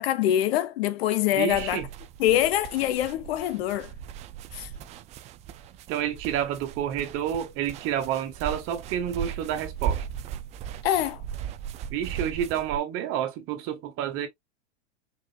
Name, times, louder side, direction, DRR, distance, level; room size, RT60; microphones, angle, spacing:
voice 1, 0.0-1.8 2.2-3.9 4.5-4.7 10.8-11.2, left 12 dB, 60° left, 0.8 m, -24 dB
voice 2, 1.3-1.9 5.9-10.0 11.9-14.3, right 10 dB, 40° right, 1.5 m, -29 dB
sound 1, 1.5-12.8, right 9 dB, 20° right, 0.3 m, -37 dB
4.8 x 3.9 x 2.4 m
hypercardioid pair, 125°, 34 cm